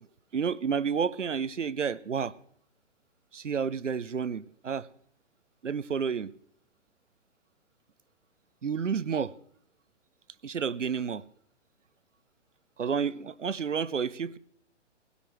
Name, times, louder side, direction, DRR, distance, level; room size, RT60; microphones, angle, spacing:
voice 1, 0.3-2.3 3.3-4.9 5.6-6.3 8.6-9.3 10.4-11.2 12.8-14.4, right 6 dB, 90° right, 0.6 m, -30 dB
20.0 x 16.5 x 3.1 m
figure-of-eight pair, 125°, 36 cm